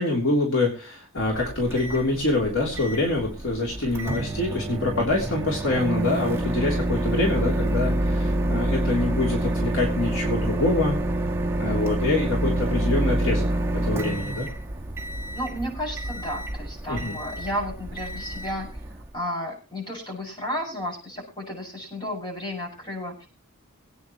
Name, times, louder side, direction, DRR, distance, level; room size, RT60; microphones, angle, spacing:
voice 1, 0.0-11.0 11.6-14.5 16.9-17.2, left 2 dB, 65° left, -1 dB, 3.3 m, -25 dB
Microwave oven, 1.2-19.1, right 1 dB, 10° right, 1.3 m, -28 dB
voice 2, 15.3-23.3, equal, 20° left, -1 dB, 6.8 m, -33 dB
23.5 x 9.4 x 3.1 m, 0.31 s
head